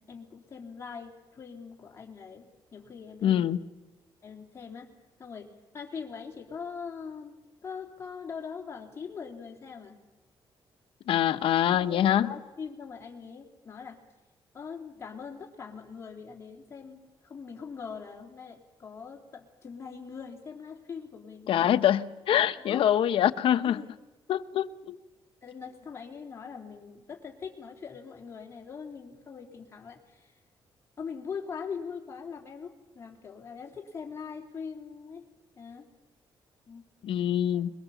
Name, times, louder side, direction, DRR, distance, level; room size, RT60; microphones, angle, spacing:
voice 1, 0.0-3.5 4.2-4.9 5.2-7.4 7.6-10.0 11.7-14.0 14.5-21.7 22.6-22.8 23.6-23.9 25.4-30.3 31.0-35.3 35.5-35.9 36.7-36.9 37.5-37.6, left 6 dB, 30° left, 0 dB, 3.3 m, -42 dB
voice 2, 3.2-3.6 11.1-12.3 21.5-23.8 24.3-25.0 37.0-37.7, left 10 dB, 70° left, 12 dB, 0.9 m, -24 dB
24.0 x 22.0 x 7.1 m, 1.1 s
cardioid pair, 155°, 9 cm